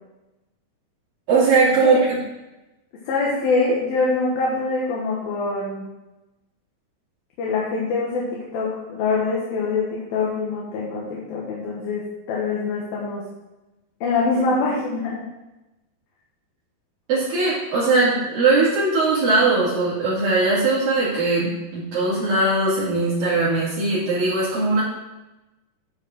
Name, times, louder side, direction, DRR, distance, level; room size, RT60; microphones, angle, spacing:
voice 1, 1.3-2.2 17.1-24.8, right 3 dB, 65° right, -10 dB, 4.3 m, -20 dB
voice 2, 3.1-5.9 7.4-13.2 14.0-15.2, left 3 dB, 70° left, -4 dB, 3.2 m, -24 dB
12.0 x 4.9 x 6.2 m, 1.0 s
omnidirectional pair, 4.5 m